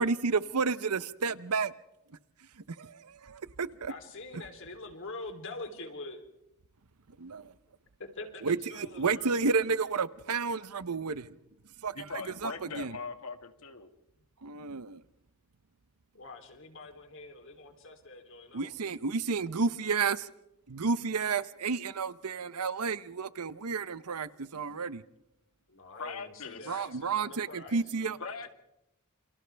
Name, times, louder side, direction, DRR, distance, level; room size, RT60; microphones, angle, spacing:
voice 1, 0.0-1.7 2.8-3.9 7.2-7.5 8.4-11.3 11.8-12.0 12.4-12.9 14.4-15.0 18.5-20.3 20.7-25.0 26.7-28.2, right 4 dB, 90° right, 15 dB, 0.8 m, -31 dB
voice 2, 3.9-6.2 8.0-9.5 16.1-18.7 25.7-28.5, left 2 dB, 60° left, 5 dB, 3.2 m, -45 dB
voice 3, 11.9-13.9 26.0-26.8 28.2-28.5, left 4 dB, 75° left, 7 dB, 2.0 m, -40 dB
28.5 x 27.5 x 3.4 m, 0.85 s
head